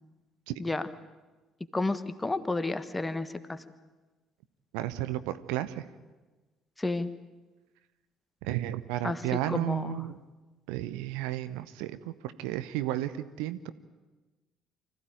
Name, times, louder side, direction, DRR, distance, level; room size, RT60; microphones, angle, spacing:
voice 1, 1.7-3.6 6.8-7.1 9.0-9.2 9.5-10.0, left 2 dB, 15° left, 12 dB, 1.4 m, -31 dB
voice 2, 4.7-5.8 8.4-10.2 10.7-13.1 13.4-13.7, right 14 dB, 65° right, 12 dB, 0.8 m, -33 dB
25.0 x 15.0 x 9.1 m, 1.2 s
figure-of-eight pair, 50°, 0 cm